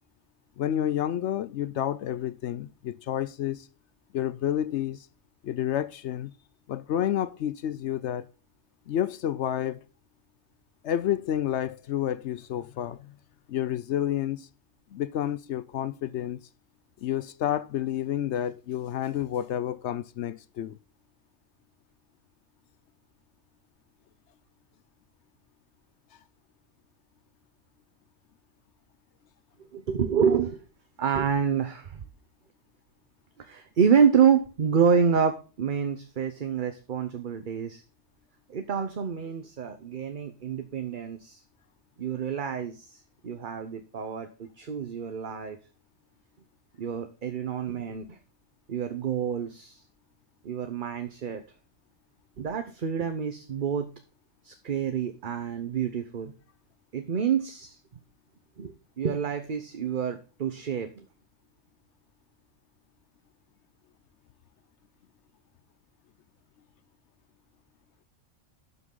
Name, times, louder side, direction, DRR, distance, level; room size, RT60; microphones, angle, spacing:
voice 1, 0.6-3.7 4.1-5.1 5.4-6.3 6.7-8.3 8.9-9.8 10.8-13.1 13.5-14.5 14.9-16.4 17.0-20.8 34.1-34.2, left 11 dB, 70° left, 0.8 m, -30 dB
voice 2, 29.6-30.6 31.0-32.0 33.4-37.8 38.5-41.4 42.0-45.6 46.8-48.2 48.7-49.8 50.4-51.4 52.4-53.9 54.4-56.3 56.9-57.8 58.6-61.1, right 7 dB, 45° right, 0.9 m, -27 dB
11.5 x 6.1 x 3.8 m
omnidirectional pair, 1.3 m